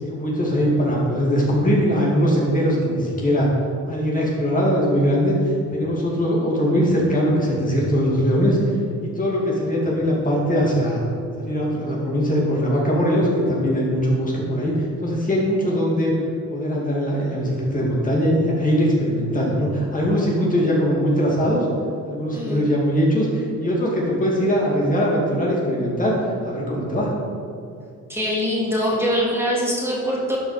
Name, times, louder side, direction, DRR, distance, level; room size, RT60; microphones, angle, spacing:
voice 1, 0.0-3.5 3.9-5.4 5.7-8.6 9.0-11.0 11.4-14.7 15.0-16.1 16.5-21.6 22.1-27.1, equal, 25° left, -4 dB, 2.6 m, -21 dB
voice 2, 28.1-30.4, equal, 10° right, -5 dB, 2.5 m, -23 dB
11.5 x 5.4 x 5.1 m, 2.4 s
cardioid pair, 90°, 30 cm